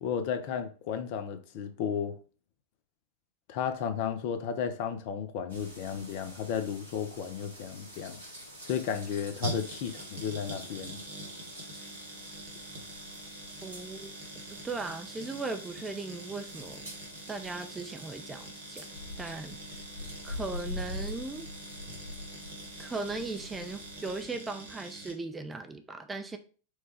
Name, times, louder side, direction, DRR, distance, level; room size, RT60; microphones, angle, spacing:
voice 1, 0.0-2.1 3.5-8.2 8.7-11.0, left 7 dB, 50° left, 0.6 m, -33 dB
sound 1, 5.5-24.2, left 1 dB, 80° right, 1.5 m, -45 dB
sound 2, 8.6-25.1, right 1 dB, 60° right, 1.5 m, -44 dB
voice 2, 13.6-14.1 14.6-16.9 17.3-18.9 19.2-19.6 20.2-21.5 22.8-26.4, right 3 dB, 15° right, 0.5 m, -38 dB
4.7 x 2.3 x 4.4 m
figure-of-eight pair, 90°, 0 cm